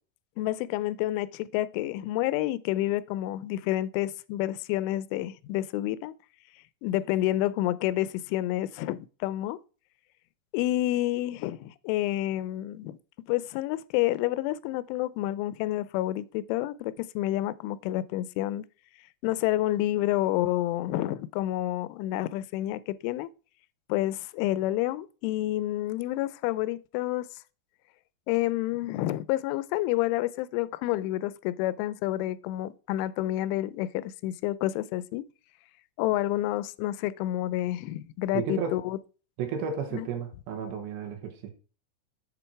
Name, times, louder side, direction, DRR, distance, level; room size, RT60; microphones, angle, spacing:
voice 1, 0.4-6.1 6.8-9.6 10.5-13.0 13.3-18.6 19.2-23.3 23.9-27.3 28.3-35.2 36.0-39.0 39.9-40.1, left 15 dB, 90° left, 3.0 m, -29 dB
voice 2, 38.3-38.8 39.4-41.5, right 6 dB, 75° right, 3.4 m, -33 dB
7.6 x 6.9 x 4.5 m
omnidirectional pair, 5.4 m